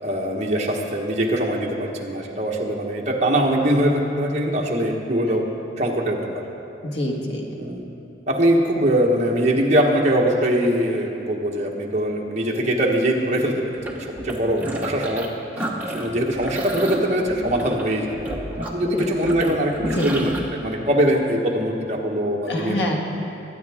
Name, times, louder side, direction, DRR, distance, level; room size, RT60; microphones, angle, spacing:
voice 1, 0.0-5.5 5.8-6.4 7.6-7.8 8.3-13.6 13.9-14.0 14.2-15.3 15.6-18.1 18.7-22.8, right 1 dB, 40° right, -1 dB, 1.4 m, -22 dB
voice 2, 6.8-7.5 18.9-19.1 19.8-20.1 22.5-23.0, left 1 dB, 75° left, 0 dB, 1.8 m, -25 dB
sound 1, 13.7-15.3 15.6-20.4, right 1 dB, 10° right, 1.1 m, -31 dB
22.0 x 9.1 x 3.6 m, 2.9 s
head